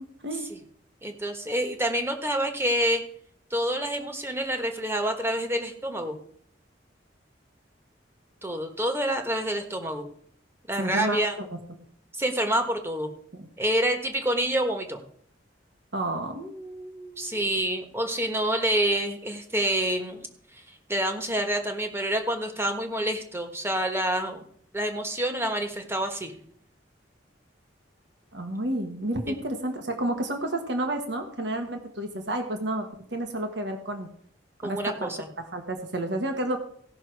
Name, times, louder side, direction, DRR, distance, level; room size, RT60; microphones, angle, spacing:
voice 1, 1.0-3.0 3.5-6.2 8.4-10.0 10.7-11.3 12.2-13.1 13.6-15.0 17.2-20.3 20.5-20.6 20.9-24.5 24.7-26.3 34.6-35.2, right 1 dB, 15° right, 5 dB, 1.3 m, -27 dB
voice 2, 10.8-11.5 13.3-13.5 15.9-17.5 28.3-32.9 33.1-34.1 34.6-35.1 35.5-36.6, right 1 dB, 65° right, 5 dB, 1.4 m, -31 dB
16.5 x 6.2 x 4.7 m, 0.64 s
head